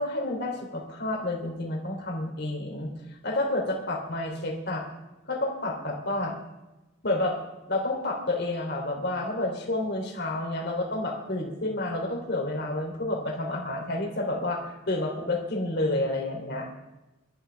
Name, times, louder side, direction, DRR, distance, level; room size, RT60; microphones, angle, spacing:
voice 1, 0.0-2.9 3.2-4.8 5.3-6.3 7.0-7.4 7.7-16.7, left 2 dB, 55° left, 1 dB, 3.3 m, -29 dB
28.0 x 13.0 x 3.5 m, 1.0 s
head